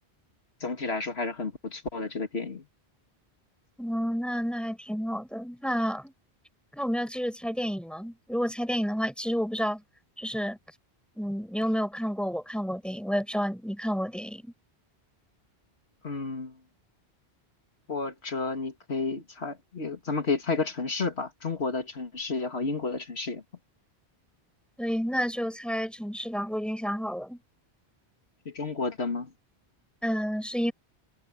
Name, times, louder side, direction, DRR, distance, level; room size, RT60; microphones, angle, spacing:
voice 1, 0.6-2.7 16.0-16.6 17.9-23.4 28.5-29.3, left 3 dB, 70° left, 2.6 m, -31 dB
voice 2, 3.8-6.1 6.7-9.8 10.2-10.6 11.2-14.5 24.8-27.4 30.0-30.7, equal, ahead, 7.3 m, -30 dB
omnidirectional pair, 1.1 m